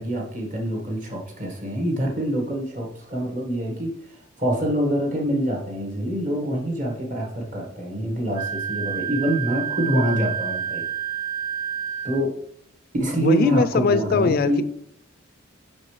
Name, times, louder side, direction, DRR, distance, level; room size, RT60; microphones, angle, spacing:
voice 1, 0.0-3.9 4.4-10.9 12.0-12.3 13.0-14.6, right 1 dB, 40° right, 0 dB, 1.4 m, -25 dB
Wind instrument woodwind instrument, 8.3-12.2, right 8 dB, 20° right, 0.5 m, -29 dB
voice 2, 13.2-14.6, left 5 dB, 45° left, 13 dB, 0.3 m, -21 dB
5.6 x 5.2 x 3.2 m, 0.70 s
head